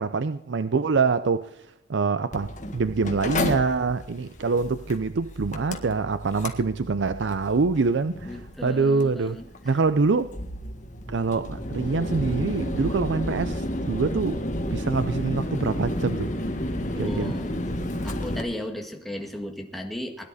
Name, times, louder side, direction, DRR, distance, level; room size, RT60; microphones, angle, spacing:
voice 1, 0.0-1.5 1.9-9.4 9.6-10.3 11.1-14.4 14.7-16.3 17.0-17.3, right 4 dB, 80° right, 0.5 m, -25 dB
Mechanical fan, 2.3-18.4, left 1 dB, 45° left, 1.8 m, -32 dB
voice 2, 8.2-9.5 16.9-17.5 18.0-20.3, left 1 dB, ahead, 1.8 m, -35 dB
21.5 x 11.0 x 4.2 m
head